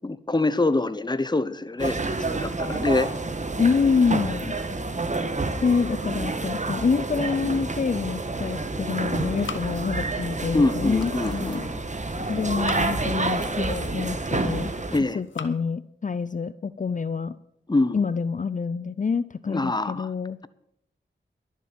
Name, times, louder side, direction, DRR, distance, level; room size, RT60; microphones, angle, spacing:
voice 1, 0.0-3.1 10.5-11.8 14.9-15.2 17.7-18.0 19.5-20.1, left 2 dB, 20° left, 14 dB, 0.9 m, -25 dB
sound 1, 1.8-15.0, right 3 dB, 40° right, 1.4 m, -29 dB
voice 2, 3.6-4.6 5.6-11.7 12.2-14.7 15.1-17.4 17.9-20.4, left 5 dB, 40° left, 15 dB, 0.5 m, -26 dB
sound 2, 7.7-8.5 8.8-10.3 10.6-11.4 12.3-13.2 13.8-14.5 15.1-15.6, left 6 dB, 85° left, 1.1 m, -42 dB
sound 3, 9.1-14.7, right 1 dB, 20° right, 1.7 m, -40 dB
11.5 x 7.4 x 8.6 m, 0.76 s
cardioid pair, 45°, 19 cm